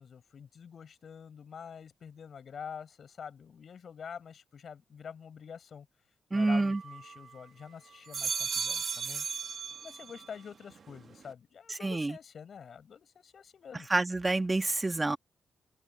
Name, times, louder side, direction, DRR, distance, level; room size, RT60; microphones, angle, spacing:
voice 1, 0.0-5.9 6.3-9.3 9.6-13.9, left 7 dB, 60° left, 6.0 m, -47 dB
voice 2, 6.3-6.8 11.8-12.1 13.9-15.2, right 2 dB, 25° right, 1.5 m, -27 dB
sound 1, 6.3-7.5 7.9-10.3 10.7-11.3, right 6 dB, 60° right, 1.3 m, -37 dB
open air
supercardioid pair, 55°, 0 cm